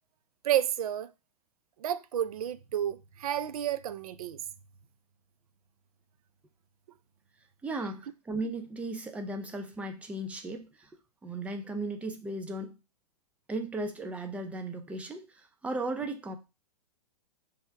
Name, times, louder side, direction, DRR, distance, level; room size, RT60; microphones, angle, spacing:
voice 1, 0.4-1.1 1.8-4.4, right 11 dB, 65° right, 0.4 m, -31 dB
voice 2, 7.6-10.9 11.2-12.8 13.5-16.4, right 2 dB, 5° right, 0.4 m, -36 dB
3.4 x 2.2 x 4.4 m
hypercardioid pair, 120°, 20 cm